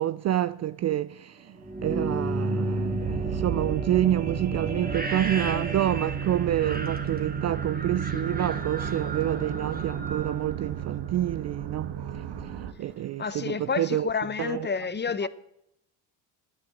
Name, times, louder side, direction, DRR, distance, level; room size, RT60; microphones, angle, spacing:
voice 1, 0.0-1.6 1.8-12.0 12.8-14.1 14.4-14.9 15.2-15.3, right 12 dB, 35° right, 0.4 m, -28 dB
ab hauntedharbour atmos, 1.6-11.4, right 2 dB, 20° right, 2.1 m, -33 dB
sound 1, 3.0-12.7, right 8 dB, 60° right, 1.5 m, -34 dB
voice 2, 13.2-15.3, left 5 dB, 20° left, 0.8 m, -29 dB
9.8 x 9.7 x 8.6 m
hypercardioid pair, 70°, 48 cm